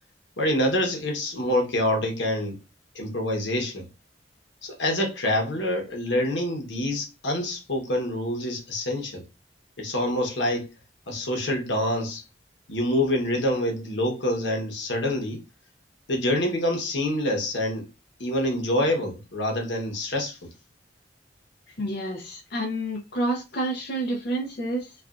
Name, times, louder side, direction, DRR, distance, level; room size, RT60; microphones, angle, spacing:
voice 1, 0.4-2.6 2.9-3.9 4.6-9.2 9.8-10.7 11.1-12.2 12.7-15.4 16.1-17.9 18.2-20.4, left 1 dB, 90° left, 1.0 m, -26 dB
voice 2, 21.8-24.9, right 1 dB, 60° left, 0.6 m, -29 dB
3.3 x 2.4 x 2.4 m
head